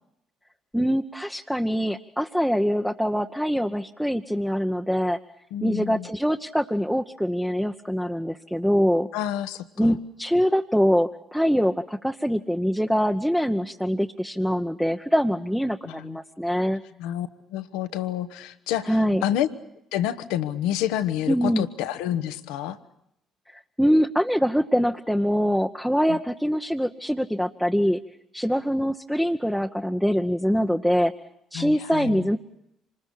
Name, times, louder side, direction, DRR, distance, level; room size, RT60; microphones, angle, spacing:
voice 1, 0.7-5.2 5.6-9.1 9.8-16.8 18.9-19.2 21.3-21.7 23.5-28.0 28.3-31.1 31.5-32.4, equal, ahead, 4 dB, 0.9 m, -24 dB
voice 2, 5.5-6.1 9.1-9.9 15.8-16.2 17.0-19.5 19.9-22.8 26.1-26.2 31.5-32.3, left 11 dB, 80° left, 11 dB, 1.0 m, -29 dB
26.0 x 20.5 x 8.4 m, 0.79 s
hypercardioid pair, 50°, 0 cm